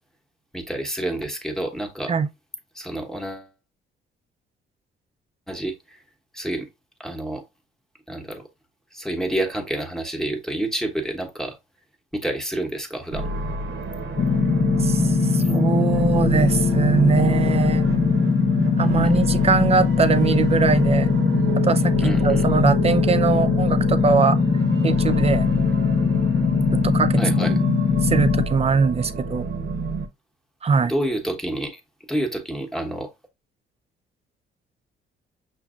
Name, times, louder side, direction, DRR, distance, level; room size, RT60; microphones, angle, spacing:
voice 1, 0.5-2.1 2.7-3.5 5.5-6.0 6.3-6.7 7.0-7.4 8.1-8.4 8.9-11.6 12.1-13.3 15.4-15.5 18.8-19.1 22.0-22.5 27.2-27.6 30.9-31.8 32.1-33.1, right 1 dB, ahead, 1.0 m, -28 dB
sound 1, 13.1-30.1, right 4 dB, 65° right, 0.8 m, -29 dB
sound 2, 14.2-28.5, left 6 dB, 40° left, 0.4 m, -21 dB
voice 2, 14.8-17.8 18.8-21.1 21.6-24.4 24.8-25.4 26.7-27.6 28.0-29.5 30.6-30.9, right 5 dB, 30° right, 0.5 m, -21 dB
5.9 x 2.6 x 2.4 m
cardioid pair, 90°, 20 cm